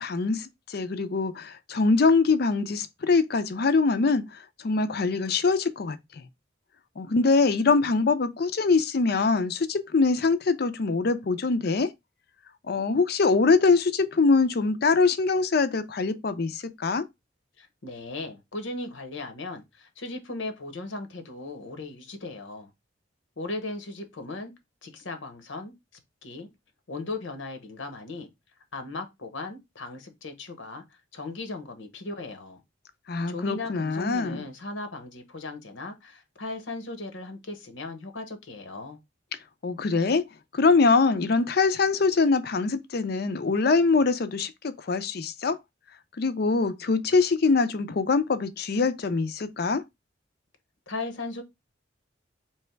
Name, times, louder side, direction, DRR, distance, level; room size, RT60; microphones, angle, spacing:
voice 1, 0.0-6.3 7.0-11.9 12.7-17.1 33.1-34.5 39.6-40.2 40.5-45.6 46.2-49.8, left 4 dB, 55° left, 0.5 m, -23 dB
voice 2, 17.6-22.7 23.4-24.5 24.8-25.7 26.2-26.5 26.9-28.3 28.7-32.6 33.3-39.0 50.9-51.4, left 2 dB, 80° left, 0.9 m, -37 dB
3.3 x 3.1 x 4.3 m
head